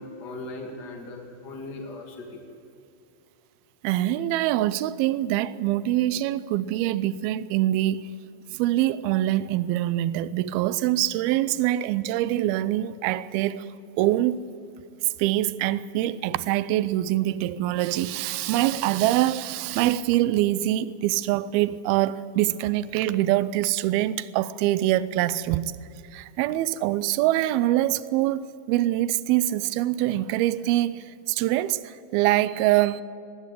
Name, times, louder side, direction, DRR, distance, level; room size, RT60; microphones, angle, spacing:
voice 1, 0.0-2.4, left 2 dB, 30° left, 2.4 m, -38 dB
voice 2, 3.8-8.2 8.5-13.7 14.0-14.4 15.2-25.7 26.1-33.0, right 14 dB, 85° right, 2.5 m, -24 dB
19.5 x 17.0 x 8.3 m
omnidirectional pair, 4.4 m